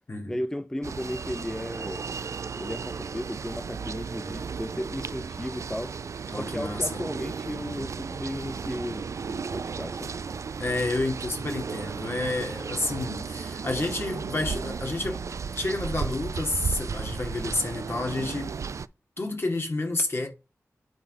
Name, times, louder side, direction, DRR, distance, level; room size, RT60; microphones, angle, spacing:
voice 1, 0.3-2.1 2.5-6.0 6.3-10.2, left 1 dB, 10° left, 0.4 m, -35 dB
sound 1, 0.8-18.9, right 5 dB, 65° right, 0.3 m, -34 dB
voice 2, 6.3-7.0 10.6-15.2 15.6-18.5 19.2-20.3, left 2 dB, 45° left, 2.4 m, -30 dB
9.1 x 3.8 x 5.2 m
wide cardioid pair, 60°, 6 cm